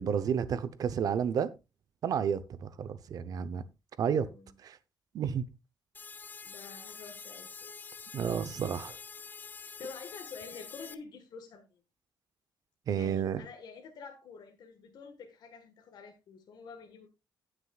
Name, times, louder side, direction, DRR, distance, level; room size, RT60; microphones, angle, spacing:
voice 1, 0.0-1.5 2.0-3.6 4.0-4.3 4.6-4.8 5.1-5.4 8.1-9.0 12.9-13.4, right 7 dB, 50° right, 0.8 m, -31 dB
voice 2, 4.0-4.6 6.4-7.7 9.6-11.8 13.0-17.1, left 5 dB, 60° left, 1.5 m, -48 dB
sound 1, 5.9-10.9, left 5 dB, 25° left, 0.6 m, -46 dB
17.5 x 6.3 x 2.4 m
wide cardioid pair, 180°, 8 cm